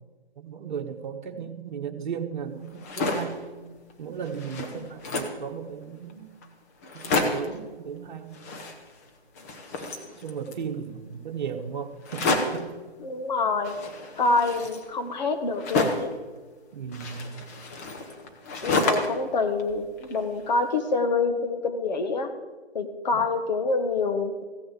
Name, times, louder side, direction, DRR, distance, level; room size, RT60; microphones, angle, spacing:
voice 1, 0.4-3.4 4.0-6.2 6.9-8.3 9.8-12.7 16.7-17.3 23.1-23.2, right 7 dB, 45° right, 4 dB, 1.4 m, -35 dB
sound 1, 2.7-3.4 3.9-4.0 4.2-5.4 6.1-6.2 6.4-6.5 6.8-7.6 8.3-9.1 9.3-10.7 12.0-12.7 13.6-16.2 16.9-19.3 19.6-20.5, left 3 dB, 15° left, 0.7 m, -30 dB
voice 2, 13.0-13.8 14.2-16.1 18.6-22.3 22.7-24.4, left 3 dB, 45° left, 7 dB, 1.3 m, -26 dB
15.0 x 6.4 x 8.2 m, 1.3 s
figure-of-eight pair, 145°, 32 cm